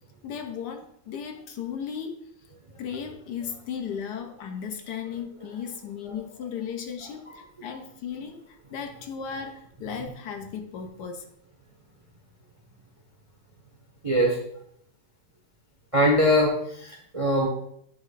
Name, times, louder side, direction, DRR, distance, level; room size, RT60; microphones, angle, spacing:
voice 1, 0.2-2.3 2.8-11.3, left 7 dB, 70° left, 5 dB, 1.3 m, -36 dB
voice 2, 14.0-14.4 15.9-17.5, equal, 30° right, 0 dB, 0.6 m, -22 dB
8.7 x 3.1 x 4.0 m, 0.71 s
omnidirectional pair, 1.9 m